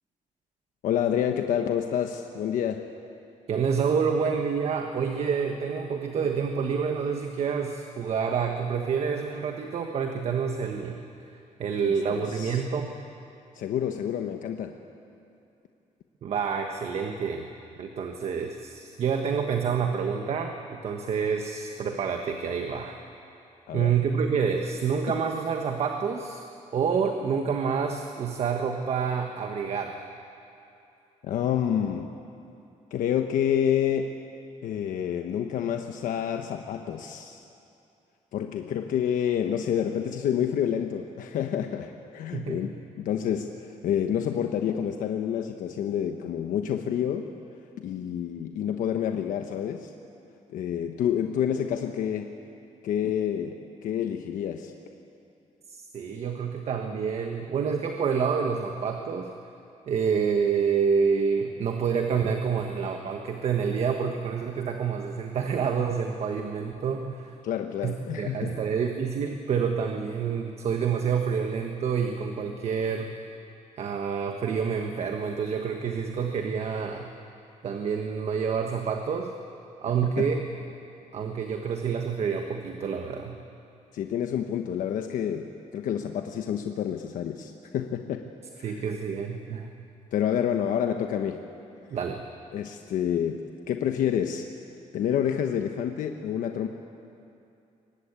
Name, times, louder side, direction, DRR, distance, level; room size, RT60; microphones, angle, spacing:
voice 1, 0.8-2.9 11.8-12.6 13.5-14.7 23.7-23.9 31.2-32.1 32.9-34.1 34.6-37.4 38.3-47.3 47.8-49.9 50.5-52.3 52.8-54.7 67.4-68.6 80.0-80.3 83.9-85.5 85.7-88.2 88.6-88.8 90.1-91.4 92.5-94.4 94.9-96.7, left 9 dB, 85° left, 5 dB, 1.2 m, -28 dB
voice 2, 3.5-11.0 11.6-12.9 16.2-17.5 17.8-22.9 23.7-26.4 26.7-30.0 42.3-42.6 55.7-59.3 59.9-67.3 67.8-73.1 73.8-77.1 77.6-79.3 79.8-80.4 81.1-83.4 88.6-89.7 91.9-92.2, right 6 dB, 50° right, 4 dB, 1.4 m, -28 dB
23.5 x 20.0 x 8.9 m, 2.7 s
cardioid pair, 160°, 13 cm